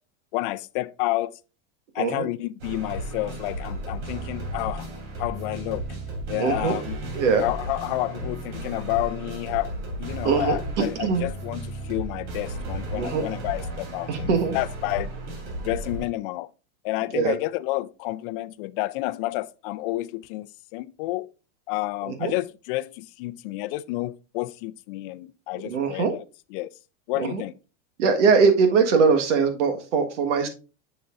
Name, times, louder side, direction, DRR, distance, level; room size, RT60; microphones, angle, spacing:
voice 1, 0.3-1.4 1.9-4.9 5.2-5.8 6.3-7.0 7.4-9.7 10.0-15.1 15.6-16.5 16.8-21.3 21.7-26.2 26.5-26.7 27.1-27.5, left 18 dB, 50° left, 0.4 m, -30 dB
sound 1, 2.6-16.0, right 1 dB, 70° right, 3.1 m, -34 dB
voice 2, 6.4-6.8 7.1-7.4 10.2-11.2 12.9-13.2 14.1-14.6 17.1-17.3 22.1-22.3 25.6-26.1 27.2-27.4 28.0-30.5, right 5 dB, 85° right, 1.5 m, -22 dB
6.9 x 6.6 x 2.4 m
supercardioid pair, 135°, 35 cm